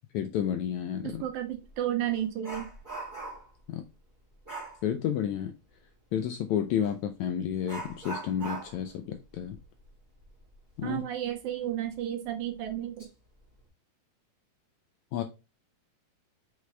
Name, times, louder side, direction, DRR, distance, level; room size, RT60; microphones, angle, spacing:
voice 1, 0.1-1.3 3.7-3.8 4.8-5.5 6.1-9.6 10.8-11.0 15.1-15.2, left 9 dB, 75° left, 1.7 m, -31 dB
voice 2, 1.0-2.7 10.8-13.1, right 11 dB, 75° right, 2.0 m, -32 dB
Dog, 1.1-1.2 1.7-3.6 4.4-4.8 6.8-6.9 7.6-10.9 11.3-11.4 11.9-12.0 12.6-13.1 13.4-13.7, right 3 dB, 5° right, 2.5 m, -41 dB
6.2 x 4.9 x 3.3 m
omnidirectional pair, 3.9 m